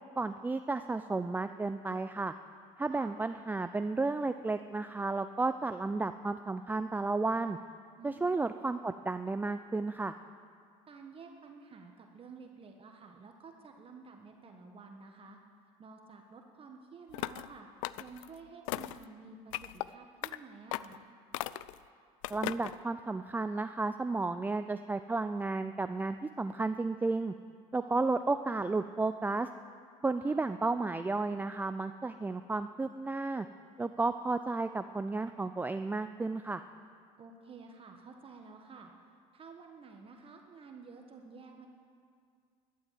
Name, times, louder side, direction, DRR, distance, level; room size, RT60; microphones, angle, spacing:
voice 1, 0.2-2.3 2.8-7.6 8.0-10.1 22.3-27.3 27.7-29.5 30.0-33.5 33.8-36.6, right 3 dB, 10° right, 10 dB, 0.4 m, -33 dB
voice 2, 8.0-8.3 10.9-15.4 15.8-21.1 27.8-28.2 30.2-30.4 37.2-41.7, right 4 dB, 35° right, 3 dB, 1.4 m, -52 dB
sound 1, 17.1-17.5 17.8-18.3 18.7-19.0 19.5-19.9 20.2-20.4 20.7-21.0 21.3-21.8 22.2-22.8, left 17 dB, 85° left, 0.4 m, -37 dB
12.5 x 11.5 x 7.5 m, 2.2 s
supercardioid pair, 90°, 16 cm